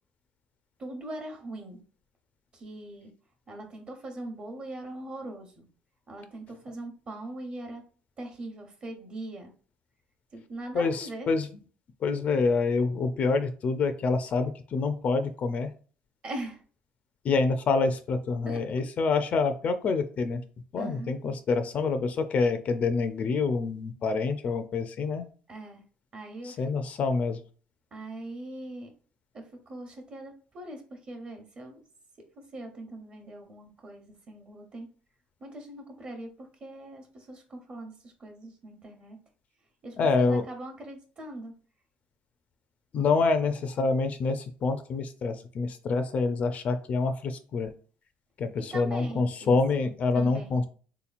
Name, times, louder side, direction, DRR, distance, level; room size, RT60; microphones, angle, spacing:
voice 1, 0.8-1.8 2.5-3.1 3.5-5.7 6.1-7.8 8.2-9.5 10.3-11.3 16.2-16.6 18.4-18.8 20.8-21.2 25.5-25.8 26.1-26.7 27.9-28.9 29.3-31.8 32.2-34.9 35.4-39.2 39.8-41.5 48.6-50.6, right 1 dB, 35° right, 4 dB, 1.0 m, -41 dB
voice 2, 10.7-11.5 12.0-15.7 17.2-20.4 20.7-25.2 26.4-27.4 40.0-40.4 42.9-47.7 48.4-50.7, left 4 dB, 45° left, 9 dB, 0.4 m, -27 dB
3.7 x 2.9 x 2.4 m, 0.41 s
cardioid pair, 120°, 3 cm